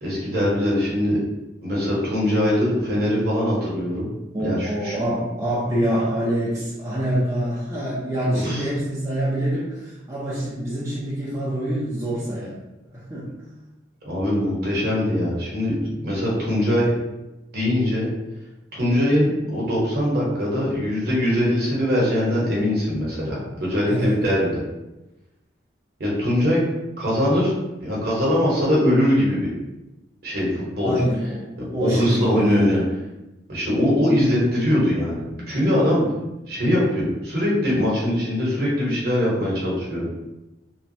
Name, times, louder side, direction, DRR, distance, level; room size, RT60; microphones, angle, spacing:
voice 1, 0.0-1.2 1.6-4.1 4.4-5.0 8.3-8.6 14.0-15.7 16.0-16.9 17.5-18.1 18.7-24.5 26.0-26.6 27.0-29.5 30.2-31.0 31.6-32.8 33.5-36.1 36.5-40.1, left 1 dB, 50° right, -5 dB, 1.0 m, -22 dB
voice 2, 4.3-12.6 12.9-13.3 23.9-24.2 30.8-32.9, right 1 dB, 15° right, -9 dB, 0.5 m, -25 dB
3.1 x 2.2 x 2.6 m, 0.99 s
head